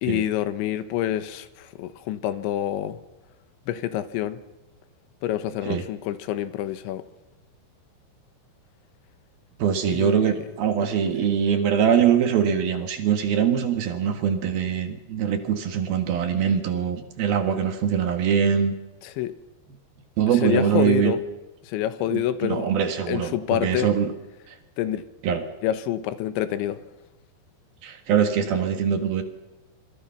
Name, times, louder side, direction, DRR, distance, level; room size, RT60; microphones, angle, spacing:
voice 1, 0.0-3.0 3.7-4.4 5.2-7.0 9.9-10.4 11.2-11.3 19.0-19.3 20.4-21.2 21.6-22.7 23.1-23.9 24.8-25.0 25.6-26.8, left 12 dB, 80° left, 12 dB, 3.4 m, -27 dB
voice 2, 9.6-18.7 20.2-21.1 22.1-24.1 24.5-24.6 25.2-25.4 27.8-29.2, right 8 dB, 60° right, 7 dB, 3.1 m, -23 dB
26.0 x 24.5 x 5.8 m, 1.0 s
omnidirectional pair, 5.4 m